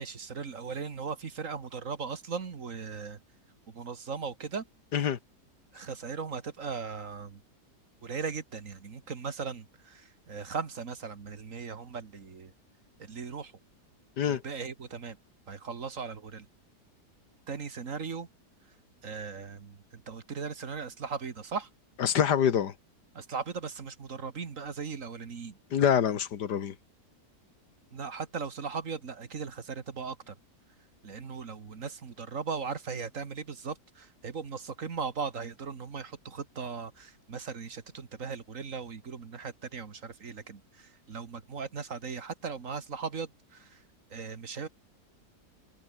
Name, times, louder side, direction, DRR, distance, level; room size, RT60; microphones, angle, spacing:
voice 1, 0.0-3.2 3.7-4.6 5.7-7.4 8.0-12.5 13.0-13.5 14.2-15.2 15.5-16.5 17.5-18.3 19.0-21.7 23.1-25.6 27.9-30.3 31.0-43.8 44.1-44.7, right 5 dB, 50° right, 2.0 m, -38 dB
voice 2, 22.0-22.7 25.7-26.7, left 8 dB, 75° left, 1.9 m, -25 dB
omnidirectional pair, 1.8 m